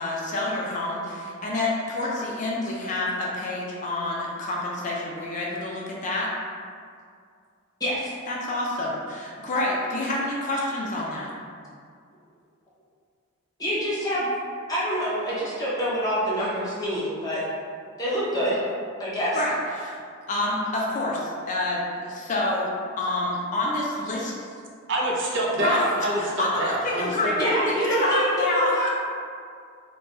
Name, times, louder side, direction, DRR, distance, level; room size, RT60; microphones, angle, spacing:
voice 1, 0.0-6.3 8.3-11.3 19.3-20.0 20.3-22.7 23.0-24.3 25.5-28.9, left 2 dB, 35° left, -4 dB, 0.4 m, -28 dB
voice 2, 7.8-8.1 13.6-14.3 14.7-17.4 18.0-18.6 19.0-19.4 27.4-28.9, equal, 20° left, -8 dB, 0.8 m, -26 dB
voice 3, 24.9-27.3, right 1 dB, 60° right, -3 dB, 0.5 m, -26 dB
2.3 x 2.2 x 3.9 m, 2.2 s
head